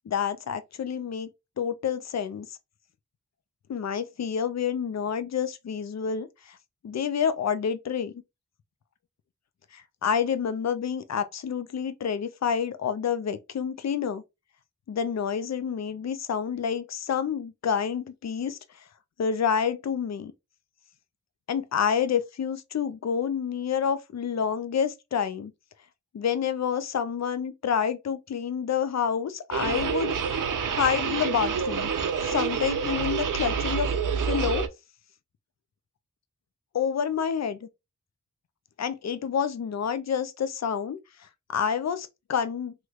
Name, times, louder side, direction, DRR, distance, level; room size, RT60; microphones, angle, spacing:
voice 1, 0.1-1.3 1.6-2.5 3.7-6.6 6.8-8.1 9.7-14.2 14.9-18.6 19.2-20.3 21.5-25.5 26.1-31.9 32.2-33.9 34.3-34.7 36.7-37.7 38.8-42.7, left 7 dB, 60° left, 0.5 m, -28 dB
sound 1, 29.5-34.7, right 6 dB, 80° right, 0.6 m, -28 dB
3.1 x 3.1 x 2.3 m
wide cardioid pair, 80°, 31 cm